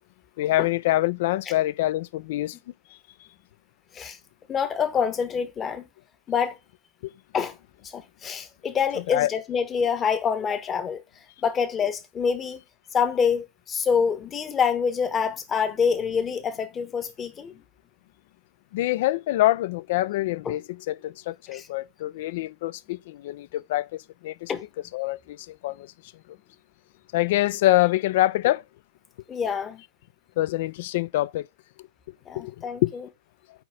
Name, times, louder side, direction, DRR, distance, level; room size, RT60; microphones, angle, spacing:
voice 1, 0.4-2.6 7.0-7.1 9.1-9.3 18.7-24.5 24.9-25.9 27.1-28.6 30.4-31.5 32.3-32.9, left 16 dB, 55° left, 0.4 m, -25 dB
voice 2, 4.5-5.9 6.3-6.6 7.3-7.5 7.8-11.0 11.4-12.6 12.9-17.6 20.4-20.5 21.5-21.7 24.5-24.6 29.3-29.8 32.3-33.1, left 6 dB, 25° left, 1.2 m, -26 dB
6.1 x 5.0 x 4.9 m
figure-of-eight pair, 95°, 0 cm